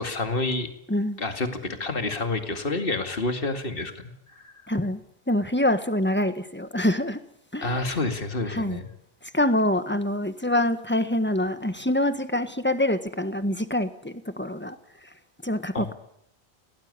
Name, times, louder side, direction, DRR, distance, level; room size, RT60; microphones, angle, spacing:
voice 1, 0.0-0.7 1.2-4.5 7.6-8.9 15.7-15.9, left 2 dB, 55° left, 7 dB, 2.4 m, -29 dB
voice 2, 0.9-1.2 4.7-5.0 5.3-7.2 7.5-7.8 8.5-8.8 9.3-14.8 15.4-15.9, left 1 dB, 10° left, 10 dB, 1.6 m, -25 dB
23.0 x 18.5 x 9.8 m, 0.77 s
omnidirectional pair, 1.1 m